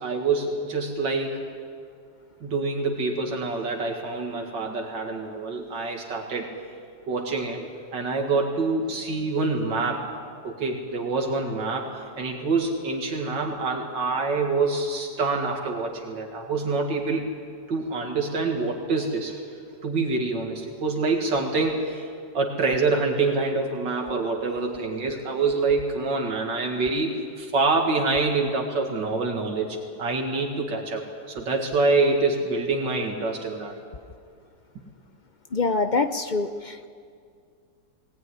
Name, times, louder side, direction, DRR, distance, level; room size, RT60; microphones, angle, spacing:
voice 1, 0.0-1.5 2.4-6.5 7.1-10.1 10.4-17.3 17.7-19.4 19.8-22.1 22.3-33.8, right 3 dB, 85° right, 1 dB, 2.7 m, -26 dB
voice 2, 35.5-36.9, left 3 dB, 50° left, 9 dB, 0.5 m, -25 dB
20.5 x 19.0 x 9.7 m, 2.2 s
omnidirectional pair, 1.9 m